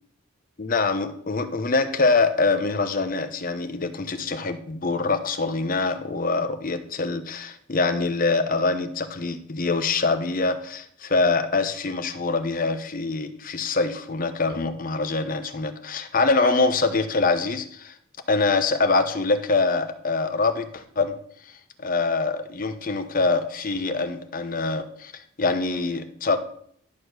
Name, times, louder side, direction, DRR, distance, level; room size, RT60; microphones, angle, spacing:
voice 1, 0.6-17.9 18.3-21.2 21.8-25.1 25.4-26.4, left 3 dB, 40° left, 9 dB, 0.8 m, -24 dB
11.5 x 4.2 x 6.4 m, 0.63 s
head